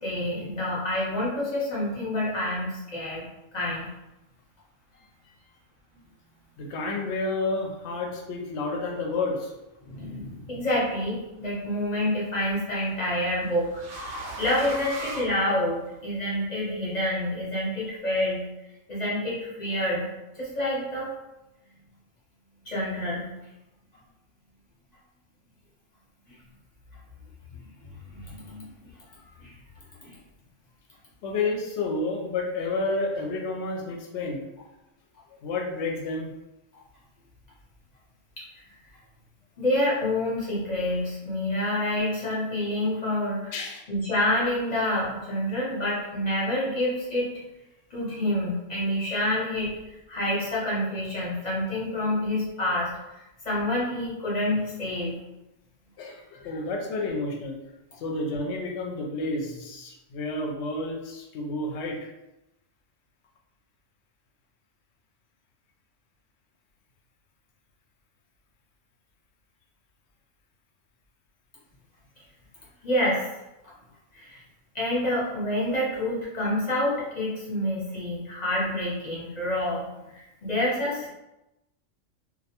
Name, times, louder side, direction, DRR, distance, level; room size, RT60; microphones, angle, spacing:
voice 1, 0.0-3.2 3.5-3.9 9.9-18.5 18.9-20.1 20.3-21.1 22.7-23.3 27.8-28.7 29.4-29.5 30.0-30.1 38.4-38.5 39.6-43.5 43.9-47.3 47.9-55.1 72.8-73.3 74.1-74.4 74.7-81.1, left 1 dB, 40° left, -6 dB, 0.8 m, -28 dB
voice 2, 6.6-9.5 31.2-34.5 35.4-36.3 43.5-43.8 56.0-57.6 58.0-62.0, left 3 dB, 70° left, 0 dB, 0.8 m, -30 dB
sound 1, 10.2-10.7 12.1-16.1, right 1 dB, 75° right, 0.9 m, -39 dB
2.3 x 2.1 x 2.8 m, 0.96 s
omnidirectional pair, 1.3 m